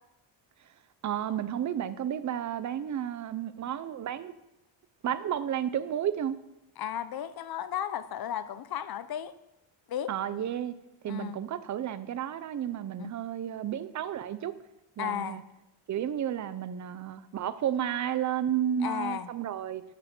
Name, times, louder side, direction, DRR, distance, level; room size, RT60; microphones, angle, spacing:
voice 1, 1.0-4.4 5.0-6.4 10.1-10.7 11.0-14.5 15.0-15.4 15.9-19.8, right 10 dB, 35° right, 0.7 m, -32 dB
voice 2, 6.8-9.3 9.9-10.1 11.1-11.4 13.0-13.1 15.0-15.4 18.8-19.3, left 10 dB, 50° left, 0.7 m, -34 dB
13.0 x 10.5 x 6.0 m
cardioid pair, 175°, 49 cm